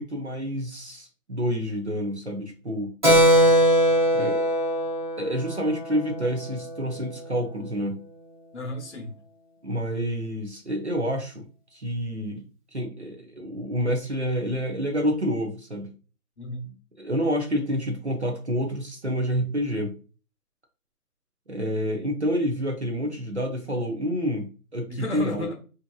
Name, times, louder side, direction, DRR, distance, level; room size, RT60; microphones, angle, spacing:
voice 1, 0.0-2.9 4.1-4.5 5.2-8.0 9.6-11.4 11.7-12.5 12.7-15.9 17.0-20.0 21.5-25.5, equal, 45° right, 2 dB, 0.5 m, -28 dB
Keyboard (musical), 3.0-7.1, equal, 30° right, 1.1 m, -21 dB
voice 2, 8.5-9.1 16.4-16.7 24.9-25.5, left 2 dB, 45° left, 2 dB, 0.8 m, -33 dB
2.7 x 2.5 x 2.2 m, 0.36 s
figure-of-eight pair, 170°, 47 cm